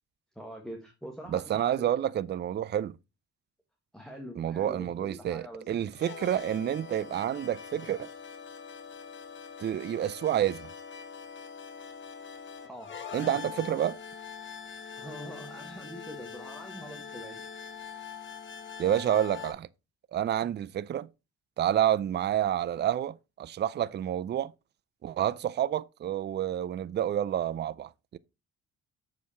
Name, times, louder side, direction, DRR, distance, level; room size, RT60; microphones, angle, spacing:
voice 1, 0.3-1.9 3.9-5.7 12.7-13.0 15.0-17.5 20.4-20.5, equal, ahead, 1.6 m, -44 dB
voice 2, 1.3-3.0 4.4-8.1 9.6-10.7 13.1-14.0 18.8-19.7 20.1-21.1 21.6-24.5 25.0-28.2, right 11 dB, 35° right, 0.4 m, -29 dB
sound 1, 5.9-19.5, left 6 dB, 40° left, 1.4 m, -43 dB
6.9 x 4.8 x 4.3 m
cardioid pair, 90°, 30 cm